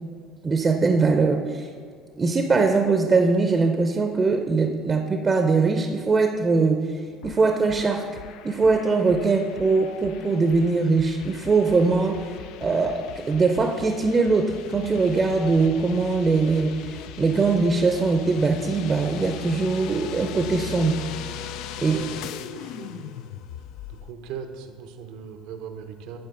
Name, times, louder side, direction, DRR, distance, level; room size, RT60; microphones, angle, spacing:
voice 1, 0.4-1.7 2.2-6.8 7.2-8.1 8.4-12.3 12.6-16.8 17.2-21.0 21.8-22.0, right 4 dB, 30° right, 5 dB, 0.6 m, -21 dB
sound 1, 7.2-24.1, left 9 dB, 70° left, 0.3 m, -39 dB
voice 2, 21.7-23.2 23.9-26.2, right 7 dB, 70° right, 7 dB, 0.7 m, -39 dB
10.5 x 4.5 x 3.7 m, 2.1 s
hypercardioid pair, 75°, 0 cm